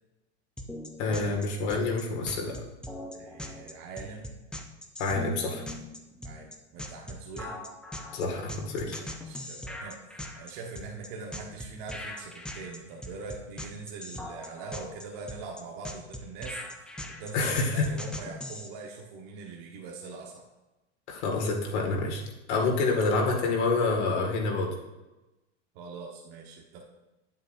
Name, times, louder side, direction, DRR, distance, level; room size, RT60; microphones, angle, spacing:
sound 1, 0.6-18.7, left 1 dB, ahead, 0.6 m, -40 dB
voice 1, 1.0-2.5 5.0-5.6 8.1-9.0 17.3-17.9 21.1-22.2 22.5-24.8, left 3 dB, 70° left, 0 dB, 2.0 m, -27 dB
voice 2, 3.1-4.3 6.2-7.6 8.9-10.0 10.4-16.6 17.1-20.4 25.7-26.8, right 4 dB, 55° right, 0 dB, 1.3 m, -42 dB
8.7 x 7.9 x 2.6 m, 1.0 s
hypercardioid pair, 105°, 35 cm